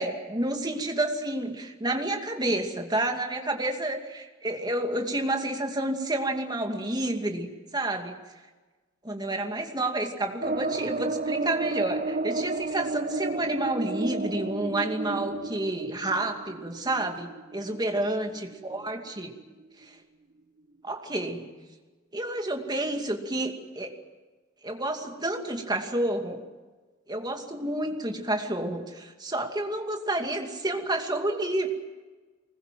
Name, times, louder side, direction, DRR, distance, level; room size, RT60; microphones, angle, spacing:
voice 1, 0.0-8.1 9.0-19.3 19.8-20.0 20.8-21.5 22.1-23.9 24.6-26.4 27.1-31.7, right 1 dB, 20° right, 4 dB, 2.5 m, -30 dB
sound 1, 10.4-18.9 19.2-19.3 19.6-19.7, right 3 dB, 40° right, 0.9 m, -32 dB
24.5 x 21.0 x 7.7 m, 1.3 s
head